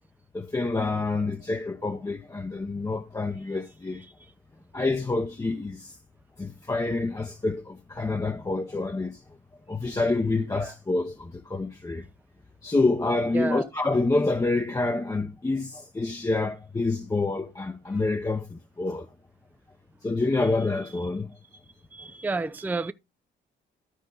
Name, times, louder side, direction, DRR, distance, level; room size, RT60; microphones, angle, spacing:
voice 1, 0.3-4.0 4.7-6.0 6.4-9.2 9.7-12.1 12.6-19.1 20.0-21.3, left 3 dB, 15° left, 0.8 m, -27 dB
voice 2, 13.3-13.7 21.9-22.9, right 3 dB, 10° right, 0.5 m, -30 dB
13.0 x 4.6 x 3.9 m
cardioid pair, 90°, 20 cm